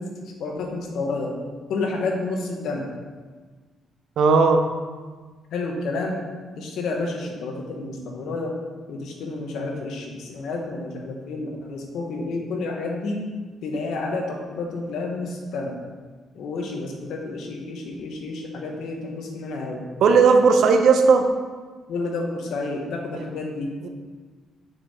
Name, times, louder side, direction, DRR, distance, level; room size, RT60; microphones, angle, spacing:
voice 1, 0.0-1.4 1.7-2.8 5.5-6.2 6.6-8.6 8.9-13.2 13.6-15.8 16.3-19.8 21.9-23.7, left 3 dB, 75° left, 1 dB, 1.3 m, -30 dB
voice 2, 4.2-4.6 20.0-21.3 23.2-23.3 23.8-23.9, right 5 dB, 70° right, 6 dB, 0.7 m, -16 dB
6.6 x 5.6 x 4.2 m, 1.4 s
cardioid pair, 90°, 0 cm